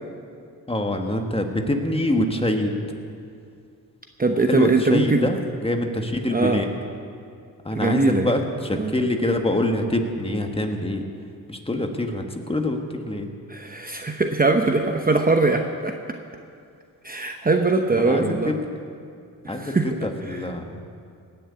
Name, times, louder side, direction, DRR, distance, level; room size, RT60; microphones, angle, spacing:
voice 1, 0.7-2.8 4.5-6.7 7.6-11.0 11.5-13.3 17.9-18.6 19.5-20.8, left 1 dB, 15° left, 4 dB, 1.6 m, -25 dB
voice 2, 4.2-5.3 6.3-6.6 7.7-8.3 8.7-8.9 13.5-15.9 17.0-18.5 19.5-19.9 20.3-20.4, right 3 dB, 25° right, 4 dB, 0.9 m, -21 dB
18.0 x 6.7 x 8.4 m, 2.4 s
cardioid pair, 65°, 37 cm